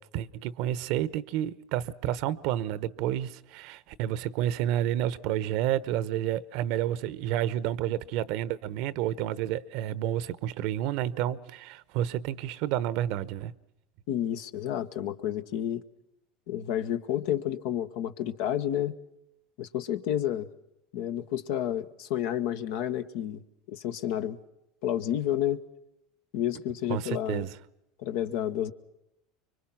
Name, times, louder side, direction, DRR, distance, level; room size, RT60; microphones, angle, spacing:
voice 1, 0.1-13.5 26.9-27.6, right 12 dB, 65° right, 0.9 m, -30 dB
voice 2, 14.1-15.8 16.5-18.9 19.6-20.5 20.9-23.4 23.7-24.4 24.8-25.6 26.3-27.5 28.0-28.7, left 11 dB, 75° left, 1.2 m, -30 dB
25.5 x 23.5 x 5.9 m
supercardioid pair, 100°, 0 cm